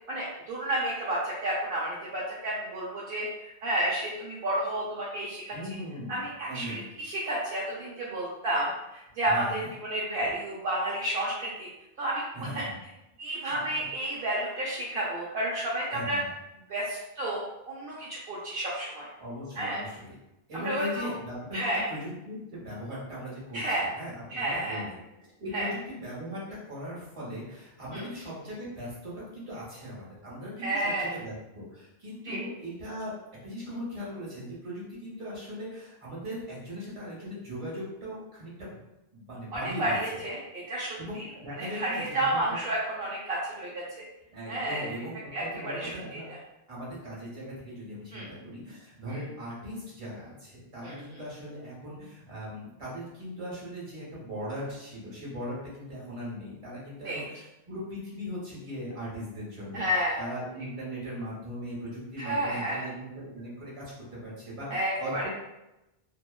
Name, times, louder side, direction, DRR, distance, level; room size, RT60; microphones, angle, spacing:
voice 1, 0.1-5.5 6.1-11.7 12.0-12.6 13.2-16.2 16.7-19.1 19.6-19.8 20.5-21.1 21.5-21.9 23.5-23.9 24.3-24.8 25.5-25.7 27.9-28.0 30.6-31.1 32.2-32.4 39.5-41.2 41.6-44.0 44.5-44.9 45.3-46.2 48.1-48.3 49.1-49.2 50.8-51.2 57.0-57.2 59.7-60.2 62.2-62.9 64.7-65.2, right 1 dB, 70° right, -6 dB, 0.7 m, -31 dB
voice 2, 5.5-6.2 6.5-6.8 9.3-9.7 10.2-10.3 12.3-12.8 13.6-13.7 15.9-16.3 19.2-20.2 20.5-33.1 33.4-38.8 39.1-40.0 41.0-42.6 44.3-46.3 46.7-65.3, equal, 30° right, -7 dB, 1.1 m, -39 dB
2.8 x 2.2 x 2.2 m, 0.93 s
omnidirectional pair, 1.1 m